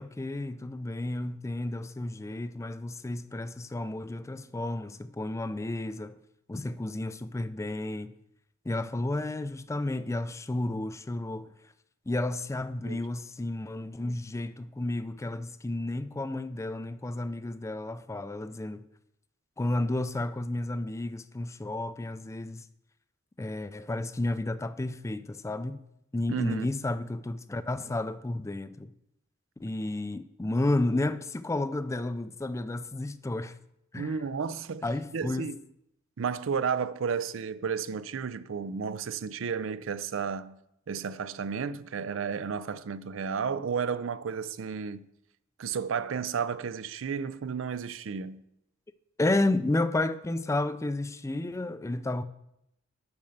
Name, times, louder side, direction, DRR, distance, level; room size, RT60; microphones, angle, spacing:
voice 1, 0.0-6.2 6.5-8.1 8.7-11.5 12.1-18.8 19.6-22.6 23.4-25.8 26.1-28.9 29.6-33.6 33.9-34.2 34.8-35.5 49.2-52.2, left 2 dB, 15° left, 0.4 m, -32 dB
voice 2, 26.3-26.7 34.0-34.9 35.1-35.6 36.2-40.6 40.9-45.1 45.6-48.4, right 6 dB, 75° right, 0.5 m, -32 dB
7.1 x 5.6 x 6.5 m
head